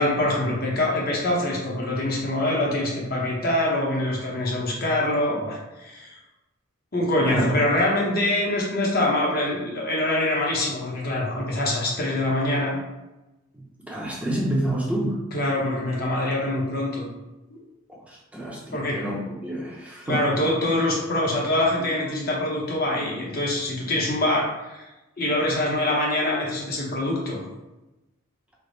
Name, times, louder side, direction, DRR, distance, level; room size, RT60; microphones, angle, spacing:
voice 1, 0.0-6.1 6.9-12.8 15.3-17.1 18.7-19.0 20.1-24.8 25.2-27.4, left 1 dB, 45° left, -3 dB, 0.7 m, -24 dB
voice 2, 7.3-7.6 13.5-15.2 17.9-20.3, right 1 dB, 5° right, -4 dB, 0.6 m, -28 dB
3.3 x 2.0 x 3.9 m, 1.0 s
head